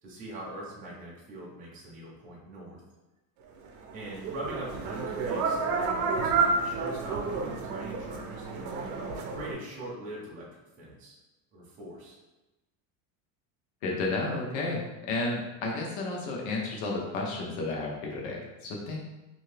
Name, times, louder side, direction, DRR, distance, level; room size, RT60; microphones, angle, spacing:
voice 1, 0.0-2.8 3.9-9.0 9.3-10.5 10.8-11.2 11.5-12.1, right 1 dB, 20° right, -5 dB, 0.5 m, -42 dB
sound 1, 3.9-9.5, right 4 dB, 75° right, 0.6 m, -30 dB
voice 2, 13.8-14.8 15.1-19.0, left 2 dB, 65° left, -1 dB, 0.8 m, -32 dB
2.7 x 2.6 x 3.3 m, 1.0 s
cardioid pair, 175°, 38 cm